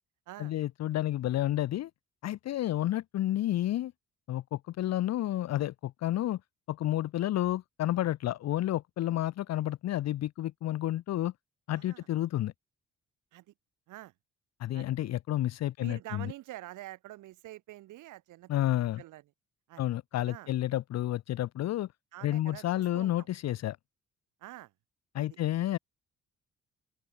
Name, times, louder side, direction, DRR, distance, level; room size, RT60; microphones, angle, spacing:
voice 1, 0.4-1.9 2.2-3.9 4.3-6.4 6.7-11.3 11.7-12.5 14.6-16.3 18.5-19.0 19.8-21.9 22.2-23.8 25.1-25.8, left 13 dB, 60° left, 0.6 m, -30 dB
voice 2, 11.7-12.1 13.3-13.4 13.9-14.1 14.7-14.9 15.8-18.5 19.0-19.2 19.7-19.8 20.3-20.5 22.1-23.3 24.4-24.7 25.2-25.3, right 16 dB, 90° right, 1.9 m, -46 dB
open air
cardioid pair, 90°, 30 cm